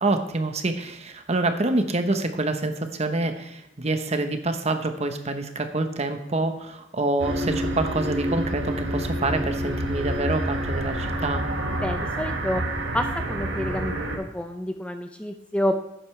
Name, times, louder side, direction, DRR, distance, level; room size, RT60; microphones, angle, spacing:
voice 1, 0.0-11.5, right 2 dB, 35° right, 7 dB, 1.0 m, -26 dB
sound 1, 7.2-14.2, right 1 dB, 75° right, 1.6 m, -28 dB
voice 2, 11.8-12.6 12.9-15.8, equal, 5° left, 6 dB, 0.5 m, -28 dB
12.0 x 9.0 x 3.3 m, 0.91 s
head